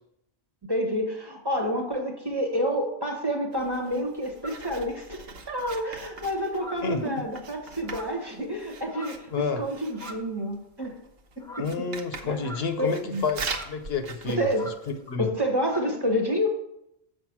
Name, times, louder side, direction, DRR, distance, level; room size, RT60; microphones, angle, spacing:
voice 1, 0.6-11.0 11.4-11.9 12.2-12.5 12.8-13.2 14.2-14.7 15.2-16.6, equal, 25° right, 2 dB, 1.2 m, -29 dB
Writing, 3.5-15.1, right 4 dB, 70° right, 1.0 m, -42 dB
sound 1, 4.4-4.7 5.5-5.9 6.5-7.1 7.8-8.3 8.8-9.3 9.9-10.4 11.4-11.8 12.4-12.9 13.4-13.8 14.5-14.8 15.1-15.3 15.6-15.9, left 1 dB, 5° left, 1.1 m, -43 dB
voice 2, 6.8-7.2 9.3-9.6 11.6-14.4 14.9-15.3, left 5 dB, 75° left, 7 dB, 1.0 m, -29 dB
7.3 x 5.2 x 5.9 m, 0.80 s
omnidirectional pair, 1.1 m